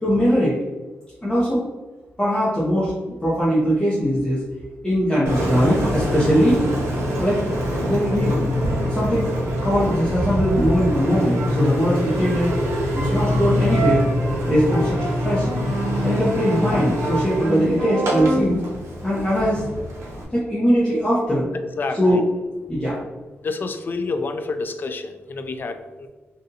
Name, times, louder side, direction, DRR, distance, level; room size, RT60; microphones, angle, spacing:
voice 1, 0.0-0.5 1.2-1.6 2.2-2.9 3.2-4.4 4.8-6.6 7.2-7.4 7.9-8.4 8.9-9.3 9.6-12.5 12.9-14.0 14.5-15.5 16.0-18.6 19.0-19.6 20.3-21.5 21.9-22.3 22.7-23.0, equal, 15° left, -9 dB, 0.9 m, -20 dB
Engine, 5.3-20.2, equal, 90° right, 0.9 m, -24 dB
voice 2, 21.8-22.2 23.4-26.1, left 3 dB, 45° left, 7 dB, 0.3 m, -28 dB
3.9 x 2.6 x 2.7 m, 1.2 s
wide cardioid pair, 115°, 5 cm